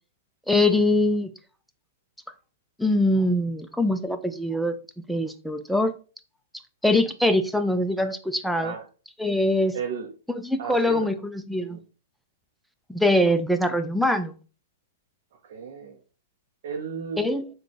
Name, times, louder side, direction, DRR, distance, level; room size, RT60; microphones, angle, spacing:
voice 1, 0.5-1.3 2.8-4.8 5.1-5.9 6.8-8.7 9.2-9.8 10.4-11.8 12.9-14.4 17.2-17.5, left 1 dB, ahead, 7 dB, 0.4 m, -23 dB
voice 2, 9.7-10.1 10.6-11.1 11.6-11.8 15.4-16.0 16.6-17.2, right 6 dB, 60° right, 2 dB, 0.5 m, -33 dB
3.7 x 2.2 x 3.3 m, 0.37 s
hypercardioid pair, 115°, 0 cm